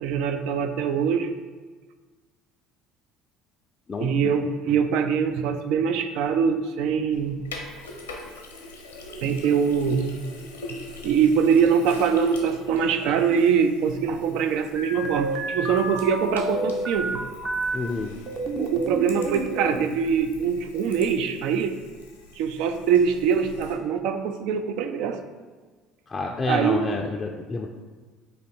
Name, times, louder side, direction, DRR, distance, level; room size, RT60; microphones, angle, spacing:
voice 1, 0.0-1.4 4.0-7.4 9.2-10.2 11.0-17.2 18.6-21.8 22.4-25.2 26.5-26.8, right 7 dB, 65° right, 8 dB, 0.3 m, -23 dB
voice 2, 3.9-4.8 17.7-18.1 26.1-27.7, left 3 dB, 30° left, 1 dB, 0.4 m, -30 dB
Sink (filling or washing), 7.1-23.7, left 2 dB, 85° left, 0.6 m, -43 dB
sound 1, 14.8-17.8 18.3-19.9, right 2 dB, 40° right, 0.7 m, -30 dB
4.1 x 2.7 x 4.3 m, 1.4 s
hypercardioid pair, 60°, 0 cm